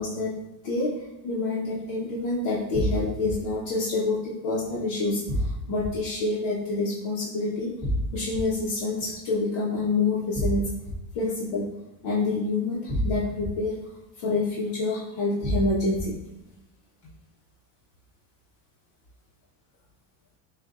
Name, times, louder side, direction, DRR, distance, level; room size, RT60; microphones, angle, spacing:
voice 1, 0.0-7.7 8.1-10.7 11.1-11.7 12.0-13.8 14.2-16.2, left 3 dB, 85° left, -7 dB, 1.1 m, -27 dB
sound 1, 2.7-3.3 5.3-5.9 7.8-8.4 10.3-10.9 12.9-13.5 15.4-16.0, equal, 5° left, 0.6 m, -27 dB
6.5 x 2.6 x 2.5 m, 0.97 s
cardioid pair, 130°, 46 cm